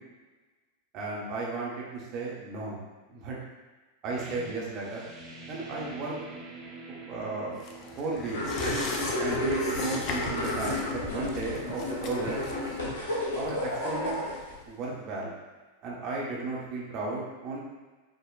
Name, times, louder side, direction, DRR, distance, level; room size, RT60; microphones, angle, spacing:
voice 1, 0.9-2.8 3.1-3.4 4.0-5.1 5.5-6.3 7.1-7.6 8.0-8.4 9.2-12.4 13.3-14.2 14.7-15.3 15.8-17.6, right 3 dB, 35° right, -4 dB, 1.1 m, -34 dB
sound 1, 4.2-9.6, right 2 dB, 15° right, 1.1 m, -46 dB
sound 2, 7.6-14.7 15.0-15.1, left 3 dB, 35° left, 0.5 m, -39 dB
sound 3, 8.3-14.5, left 1 dB, 55° left, 1.4 m, -32 dB
6.1 x 2.7 x 2.4 m, 1.3 s
figure-of-eight pair, 90°, 0 cm